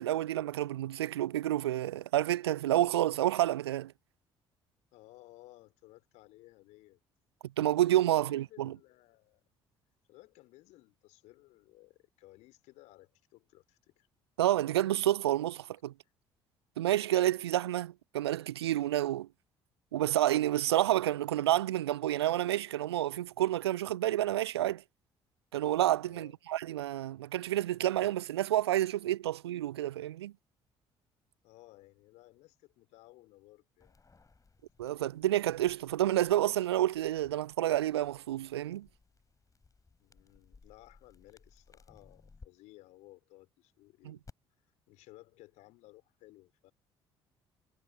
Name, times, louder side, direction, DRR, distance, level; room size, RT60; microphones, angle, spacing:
voice 1, 0.0-3.9 7.6-8.7 14.4-15.9 16.8-19.3 19.9-24.8 25.5-30.3 34.8-38.9 44.1-44.2, right 13 dB, 75° right, 0.5 m, -29 dB
voice 2, 4.9-7.0 8.1-9.4 10.1-14.1 26.0-26.3 31.4-34.0 40.0-44.2 44.9-46.7, left 19 dB, 60° left, 4.0 m, -58 dB
sound 1, 33.8-42.5 44.2-44.3, left 4 dB, 25° left, 6.8 m, -61 dB
figure-of-eight pair, 50°, 14 cm